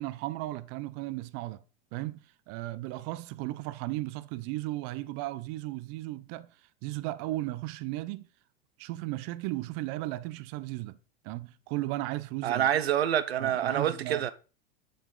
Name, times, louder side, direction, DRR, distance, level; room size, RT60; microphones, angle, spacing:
voice 1, 0.0-1.6 1.9-6.5 6.8-8.3 8.8-11.0 11.2-12.7 13.4-14.3, right 17 dB, 50° right, 0.6 m, -35 dB
voice 2, 12.4-14.3, right 10 dB, 85° right, 0.7 m, -27 dB
7.1 x 5.1 x 3.8 m
hypercardioid pair, 100°, 30 cm